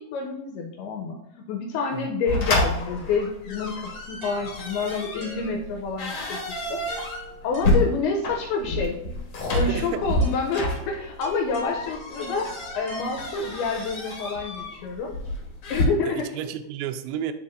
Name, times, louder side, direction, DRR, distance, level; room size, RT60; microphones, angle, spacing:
voice 1, 0.0-6.4 6.7-6.8 7.4-9.0 9.5-12.5 12.8-15.1 15.7-16.3, left 4 dB, 80° left, 1 dB, 2.4 m, -28 dB
sound 1, 2.3-15.8, left 2 dB, 65° left, 1.5 m, -29 dB
sound 2, 4.2-6.0 6.9-8.3 9.5-13.6, right 1 dB, 45° right, 2.8 m, -43 dB
voice 2, 9.7-10.1 16.0-17.3, right 10 dB, 85° right, 8 dB, 2.1 m, -32 dB
11.0 x 4.1 x 2.5 m, 0.80 s
omnidirectional pair, 4.9 m